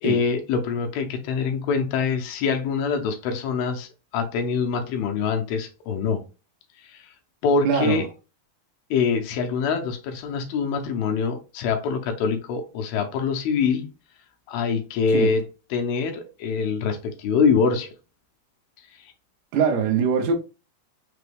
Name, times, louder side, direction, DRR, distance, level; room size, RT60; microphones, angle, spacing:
voice 1, 0.0-3.9 4.1-6.2 6.8-7.1 7.4-8.1 8.9-13.9 14.5-15.4 15.7-17.9 19.0-19.1, left 5 dB, 80° left, 2.5 m, -24 dB
voice 2, 7.6-8.0 15.1-15.3 19.5-20.3, right 6 dB, 80° right, 1.6 m, -22 dB
5.9 x 2.2 x 3.3 m
omnidirectional pair, 4.4 m